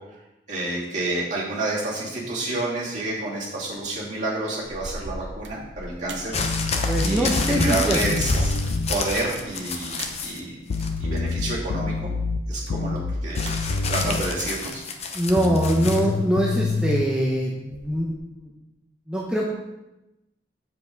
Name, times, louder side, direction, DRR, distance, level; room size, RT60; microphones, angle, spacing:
voice 1, 0.5-6.4 7.0-8.5 8.9-10.6 11.0-12.1 12.5-13.4 13.9-14.8, right 2 dB, 40° right, -7 dB, 2.9 m, -29 dB
sound 1, 2.9-3.3 3.7-4.1 4.4-7.0 7.3-7.6 8.5-11.1 12.3-14.9 16.0-16.9 17.3-18.2, right 2 dB, 80° right, 0.9 m, -42 dB
sound 2, 6.3-10.4 10.7-11.3 13.4-16.0 16.9-17.0, left 3 dB, 35° left, 0.8 m, -29 dB
sound 3, 6.4-9.0 10.7-14.3 15.4-17.0, left 3 dB, 75° left, 0.4 m, -27 dB
voice 2, 6.8-8.0 14.0-14.1 15.1-18.5 19.1-19.5, equal, 5° right, -3 dB, 0.8 m, -23 dB
7.6 x 7.4 x 3.9 m, 0.97 s
head